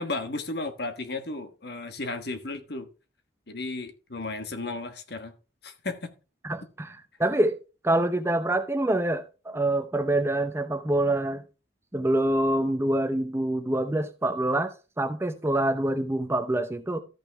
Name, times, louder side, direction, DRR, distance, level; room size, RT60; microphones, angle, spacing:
voice 1, 0.0-2.9 3.5-5.3 5.6-6.1, left 2 dB, 60° left, 1.4 m, -34 dB
voice 2, 6.4-7.6 7.8-11.4 11.9-17.0, right 1 dB, 15° right, 0.6 m, -26 dB
13.5 x 6.0 x 3.4 m
head